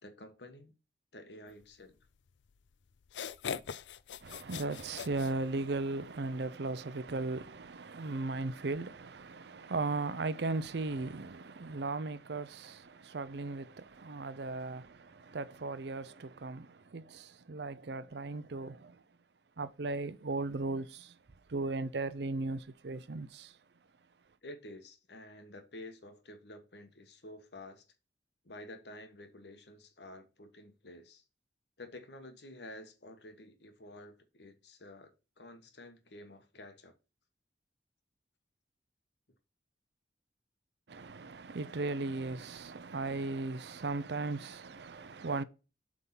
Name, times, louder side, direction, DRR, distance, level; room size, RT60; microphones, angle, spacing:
voice 1, 0.0-0.7 1.1-2.0 24.4-27.9 28.4-31.2 31.8-37.0, left 1 dB, 75° left, 1.3 m, -50 dB
sound 1, 2.5-2.6 3.0-5.9, left 7 dB, 90° left, 0.4 m, -41 dB
voice 2, 4.2-19.0 19.6-21.2 21.5-23.6 40.9-45.4, right 3 dB, 70° right, 0.6 m, -37 dB
7.9 x 3.7 x 5.6 m
head